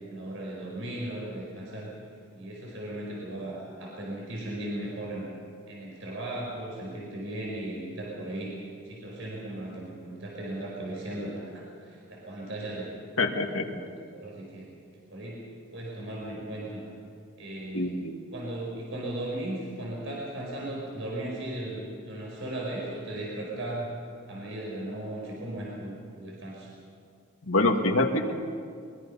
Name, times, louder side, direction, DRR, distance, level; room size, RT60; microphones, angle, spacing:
voice 1, 0.1-1.9 2.3-5.3 5.7-8.6 8.8-12.9 13.3-14.7 15.1-15.5 15.7-16.8 17.4-18.0 18.3-23.9 24.3-26.7, right 1 dB, 65° right, -3 dB, 4.9 m, -37 dB
voice 2, 13.2-13.7 17.7-18.2 27.5-28.3, left 2 dB, 80° left, 3 dB, 1.9 m, -25 dB
23.5 x 22.0 x 5.6 m, 2.2 s
head